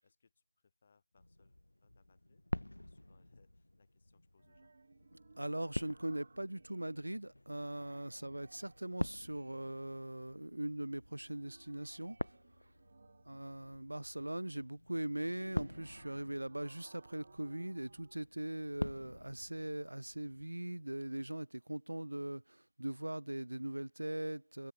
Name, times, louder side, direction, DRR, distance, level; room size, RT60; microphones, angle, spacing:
voice 1, 0.0-2.5 2.8-4.7 8.1-8.3 13.0-13.3, left 5 dB, 30° left, 5.5 m, -73 dB
sound 1, 1.2-20.4, left 1 dB, 80° left, 1.9 m, -47 dB
sound 2, 4.4-7.3 7.6-9.9 11.0-13.5 15.0-18.3, right 4 dB, 40° right, 4.7 m, -63 dB
voice 2, 5.4-12.3 13.3-24.7, right 1 dB, 85° right, 0.4 m, -41 dB
figure-of-eight pair, 170°, 0 cm